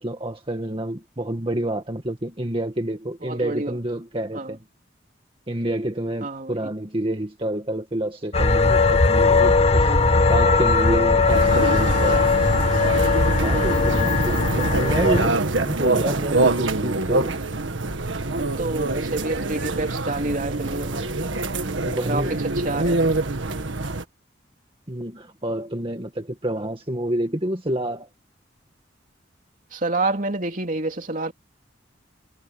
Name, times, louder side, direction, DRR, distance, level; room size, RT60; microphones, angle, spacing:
voice 1, 0.0-4.6 5.5-10.0 10.3-12.3 13.4-17.4 21.8-22.3 22.7-22.8 24.9-28.1, right 1 dB, 30° right, 2.0 m, -28 dB
voice 2, 3.2-3.8 4.3-4.6 6.2-6.6 9.8-10.0 13.5-13.9 18.4-21.1 22.0-23.3 29.7-31.3, right 2 dB, 45° right, 2.8 m, -28 dB
sound 1, 8.3-15.3, left 3 dB, 35° left, 1.6 m, -19 dB
sound 2, 11.3-24.0, right 2 dB, 85° right, 1.7 m, -25 dB
head